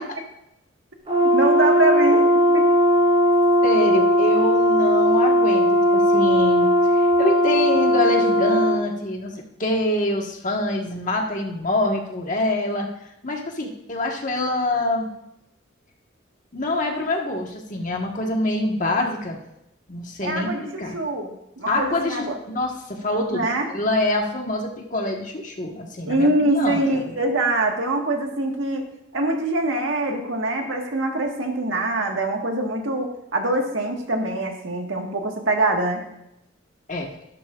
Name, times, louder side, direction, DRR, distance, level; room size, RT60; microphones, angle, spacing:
Brass instrument, 1.1-8.8, equal, 30° right, 4.2 m, -18 dB
voice 1, 1.2-2.6 20.2-22.3 23.3-23.7 26.1-28.9 29.1-36.0, right 2 dB, 90° right, 2 dB, 1.6 m, -24 dB
voice 2, 3.6-12.9 13.2-15.1 16.5-19.4 19.9-21.0 21.7-27.1 36.9-37.1, left 1 dB, 40° left, 1 dB, 1.5 m, -25 dB
13.5 x 11.5 x 2.5 m, 0.83 s
head